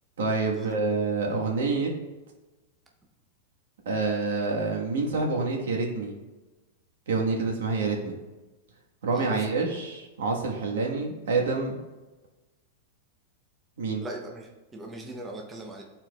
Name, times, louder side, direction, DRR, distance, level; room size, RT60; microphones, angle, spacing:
voice 1, 0.2-1.9 3.8-6.1 7.1-8.1 9.0-11.8 13.8-14.0, right 3 dB, 90° right, 0 dB, 1.3 m, -27 dB
voice 2, 9.1-9.5 14.0-15.8, right 2 dB, 15° right, 0 dB, 0.7 m, -39 dB
12.0 x 4.4 x 2.3 m, 1.1 s
supercardioid pair, 160°, 0 cm